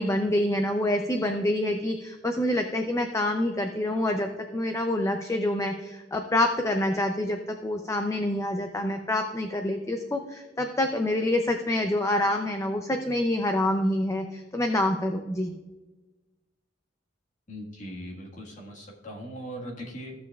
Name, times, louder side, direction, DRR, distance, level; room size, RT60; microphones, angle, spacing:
voice 1, 0.0-15.5, left 1 dB, 15° left, 5 dB, 0.4 m, -27 dB
voice 2, 17.5-20.1, equal, 40° left, -1 dB, 1.6 m, -39 dB
14.5 x 7.0 x 2.4 m, 1.2 s
head